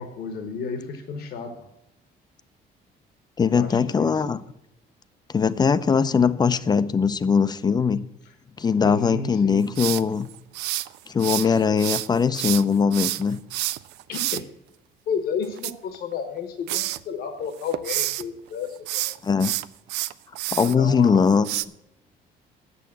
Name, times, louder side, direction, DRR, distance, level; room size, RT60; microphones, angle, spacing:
voice 1, 0.0-1.7 3.4-4.1 8.8-9.7 11.4-11.6 14.1-14.4 15.1-19.1 20.6-21.3, left 5 dB, 65° left, 7 dB, 1.2 m, -32 dB
voice 2, 3.4-4.4 5.3-8.0 8.6-10.3 11.1-13.4 19.2-19.5 20.5-21.5, left 6 dB, 25° left, 15 dB, 0.5 m, -21 dB
sound 1, 9.7-11.5 11.8-14.4 15.4-16.4 16.7-17.0 17.4-18.2 18.8-20.7 21.4-21.6, right 16 dB, 90° right, 0.4 m, -28 dB
8.5 x 6.7 x 7.5 m, 0.84 s
cardioid pair, 110°, 17 cm